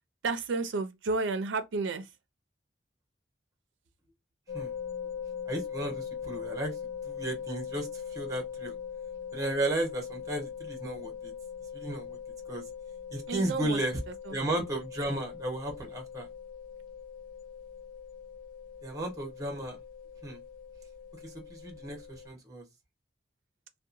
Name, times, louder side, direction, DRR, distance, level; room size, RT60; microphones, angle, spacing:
voice 1, 0.2-2.0 13.3-13.8 14.3-14.4, right 3 dB, 90° right, 0.4 m, -31 dB
sound 1, 4.5-22.3, left 7 dB, 50° left, 0.5 m, -41 dB
voice 2, 5.5-6.7 7.0-8.7 9.3-11.3 11.7-12.2 12.5-12.6 13.1-14.0 14.3-16.3 18.8-19.8 20.2-20.4 21.2-22.6, right 1 dB, 20° right, 0.8 m, -34 dB
2.7 x 2.1 x 2.4 m
head